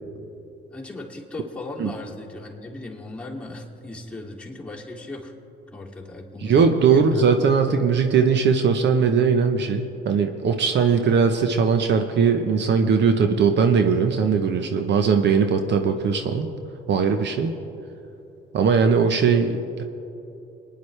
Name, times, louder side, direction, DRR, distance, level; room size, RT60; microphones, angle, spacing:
voice 1, 0.7-5.3 5.7-7.3, left 2 dB, 5° left, -4 dB, 2.5 m, -37 dB
voice 2, 6.4-16.5 16.9-17.5 18.5-19.8, right 5 dB, 65° right, 6 dB, 0.8 m, -20 dB
23.5 x 10.0 x 3.3 m, 2.9 s
cardioid pair, 90°, 20 cm